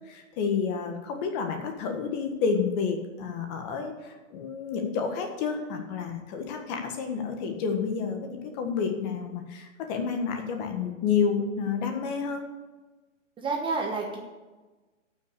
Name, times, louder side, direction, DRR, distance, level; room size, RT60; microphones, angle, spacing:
voice 1, 0.1-12.4, left 6 dB, 30° left, 4 dB, 1.6 m, -30 dB
voice 2, 13.4-14.2, right 4 dB, 15° right, 0 dB, 1.1 m, -29 dB
13.0 x 6.1 x 6.8 m, 1.2 s
hypercardioid pair, 145°, 39 cm